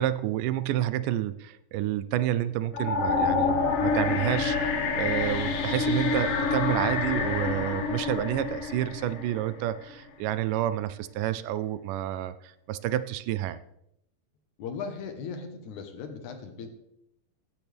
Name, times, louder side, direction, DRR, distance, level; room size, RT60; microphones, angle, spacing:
voice 1, 0.0-13.6, right 12 dB, 85° right, 14 dB, 2.1 m, -29 dB
sound 1, 2.7-9.8, left 4 dB, 90° left, 2.9 m, -27 dB
voice 2, 14.6-16.7, left 5 dB, 70° left, 6 dB, 2.6 m, -37 dB
15.5 x 11.0 x 3.4 m, 0.81 s
omnidirectional pair, 3.8 m